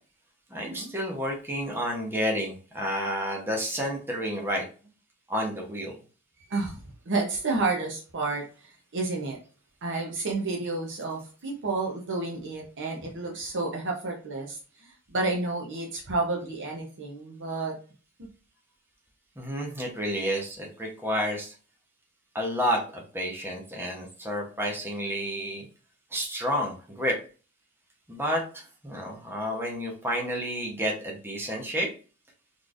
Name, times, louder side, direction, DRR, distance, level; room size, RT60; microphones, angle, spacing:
voice 1, 0.5-4.6 5.3-5.9 19.4-21.5 22.3-25.7 26.1-27.2 28.1-31.9, equal, 10° right, -1 dB, 0.9 m, -30 dB
voice 2, 7.1-9.4 9.8-14.6 15.1-17.8, right 3 dB, 55° right, 0 dB, 0.9 m, -30 dB
3.9 x 3.2 x 2.5 m, 0.36 s
head